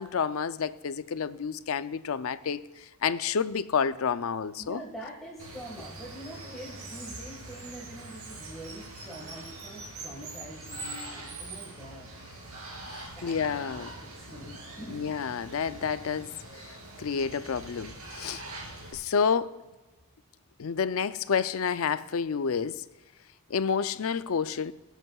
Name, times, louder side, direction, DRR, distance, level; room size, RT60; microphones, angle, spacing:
voice 1, 0.0-4.8 12.9-13.9 14.4-14.6 14.9-16.3 17.0-18.4 18.9-19.6 20.6-22.8 23.5-24.7, left 6 dB, 70° left, 0.4 m, -29 dB
voice 2, 4.6-12.1 13.0-14.5 14.8-15.0, right 1 dB, ahead, 1.6 m, -45 dB
Water, 5.4-18.9, right 2 dB, 80° right, 3.2 m, -43 dB
23.0 x 8.2 x 2.3 m
head